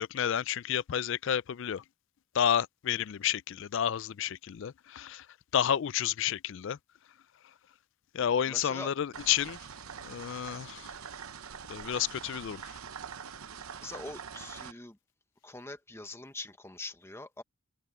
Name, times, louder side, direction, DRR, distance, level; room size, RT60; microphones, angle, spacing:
voice 1, 0.0-1.8 2.3-5.3 5.5-6.8 8.1-9.6 10.0-11.0 11.7-12.8, left 9 dB, 55° left, 0.3 m, -30 dB
voice 2, 8.5-8.9 13.8-15.0 15.4-17.4, left 2 dB, 10° left, 1.0 m, -43 dB
sound 1, 9.1-14.7, right 7 dB, 80° right, 0.9 m, -44 dB
head